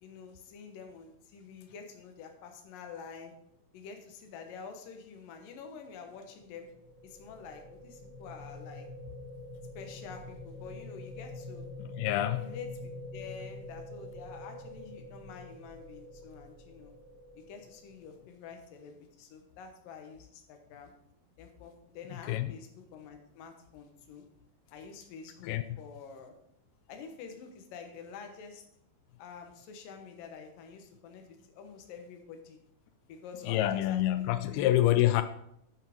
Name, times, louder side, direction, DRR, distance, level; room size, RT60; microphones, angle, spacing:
voice 1, 0.0-3.3 3.7-6.7 7.0-8.9 9.8-11.7 12.3-16.9 17.3-20.9 21.4-24.3 24.7-26.3 26.9-28.6 29.2-32.6 33.1-34.7, left 6 dB, 70° left, 5 dB, 2.8 m, -48 dB
sound 1, 6.3-18.4, left 2 dB, 15° right, 1.9 m, -46 dB
voice 2, 12.0-12.5 22.3-22.5 25.4-25.6 33.5-35.2, left 13 dB, 90° left, 10 dB, 2.5 m, -26 dB
10.5 x 5.6 x 5.2 m, 0.75 s
omnidirectional pair, 4.3 m